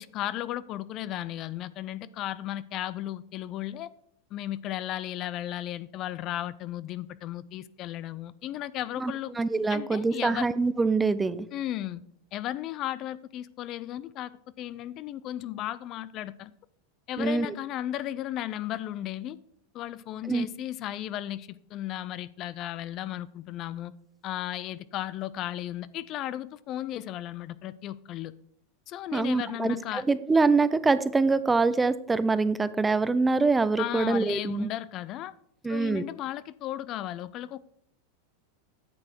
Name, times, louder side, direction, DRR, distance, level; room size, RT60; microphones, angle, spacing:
voice 1, 0.0-3.9 4.3-9.4 9.7-10.5 11.5-12.0 12.3-16.5 17.1-19.4 19.7-23.9 24.2-28.3 28.9-30.0 33.8-35.3 35.7-37.6, left 13 dB, 45° left, 0.4 m, -35 dB
voice 2, 9.0-11.5 17.2-17.5 20.3-20.5 29.1-34.7 35.6-36.0, right 3 dB, 15° right, 0.5 m, -25 dB
9.5 x 6.7 x 4.5 m
hypercardioid pair, 105°, 0 cm